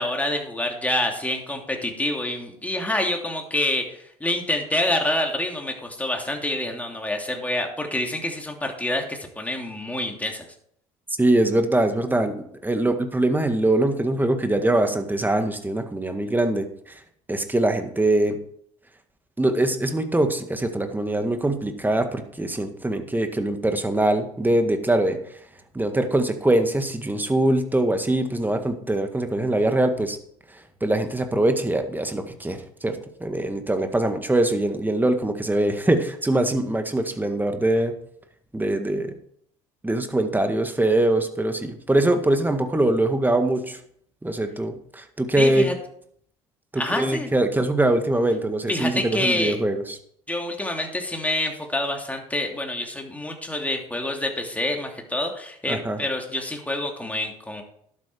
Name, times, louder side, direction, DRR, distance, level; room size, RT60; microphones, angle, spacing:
voice 1, 0.0-10.5 45.4-45.7 46.8-47.3 48.7-49.6 50.3-57.6, left 1 dB, 10° left, 2 dB, 2.9 m, -27 dB
voice 2, 11.2-12.3 12.6-16.9 17.3-18.4 19.4-25.2 25.7-30.2 30.8-37.9 38.5-39.1 39.8-43.8 44.2-45.7 46.7-50.0 55.7-56.0, right 1 dB, 10° right, 7 dB, 1.8 m, -23 dB
11.5 x 8.8 x 4.6 m, 0.66 s
hypercardioid pair, 65°, 17 cm